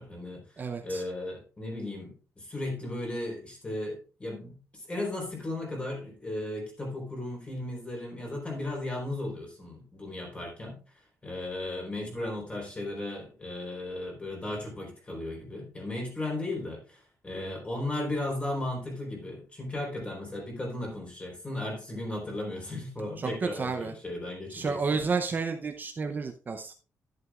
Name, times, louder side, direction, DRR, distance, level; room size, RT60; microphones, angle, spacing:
voice 1, 0.0-0.4 0.8-10.8 11.2-25.0, left 1 dB, 20° left, 0 dB, 4.2 m, -36 dB
voice 2, 0.6-1.0 23.2-23.9 24.5-26.7, right 4 dB, 30° right, 5 dB, 0.7 m, -31 dB
11.0 x 11.0 x 2.5 m, 0.35 s
wide cardioid pair, 155°, 6 cm